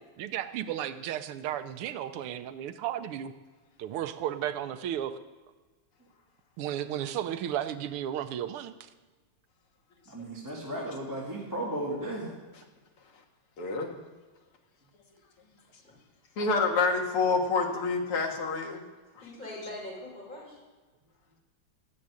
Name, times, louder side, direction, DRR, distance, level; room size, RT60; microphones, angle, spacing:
voice 1, 0.2-3.3 3.8-5.2 6.6-8.9, right 11 dB, 90° right, 11 dB, 1.7 m, -34 dB
voice 2, 10.1-12.3, right 1 dB, 10° right, -5 dB, 2.2 m, -35 dB
voice 3, 13.6-13.9 16.4-18.8, left 4 dB, 85° left, 2 dB, 2.7 m, -27 dB
voice 4, 17.7-18.1 19.2-20.6, left 1 dB, 20° left, -4 dB, 5.8 m, -43 dB
14.5 x 7.4 x 9.6 m, 1.3 s
omnidirectional pair, 2.4 m